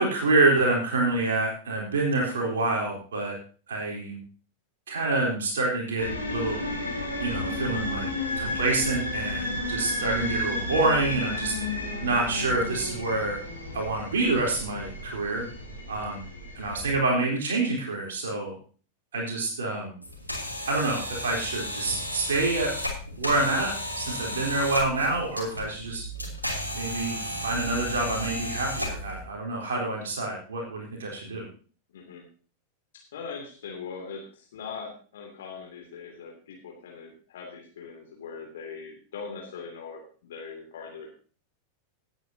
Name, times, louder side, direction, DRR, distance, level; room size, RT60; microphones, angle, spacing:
voice 1, 0.0-3.4 3.7-4.2 4.9-6.6 7.2-8.1 8.4-11.6 12.0-13.4 13.7-15.4 15.9-16.2 16.6-18.5 19.1-20.0 20.7-22.7 23.2-26.0 26.7-31.4, right 2 dB, 65° right, -1 dB, 3.7 m, -27 dB
sound 1, 6.0-17.0, left 1 dB, 90° left, 3.3 m, -32 dB
sound 2, 20.0-29.2, equal, 85° right, 2.9 m, -33 dB
voice 2, 31.9-32.2 32.9-41.1, left 5 dB, 60° left, 1 dB, 2.7 m, -41 dB
18.0 x 9.0 x 2.8 m, 0.41 s
figure-of-eight pair, 90°, 0 cm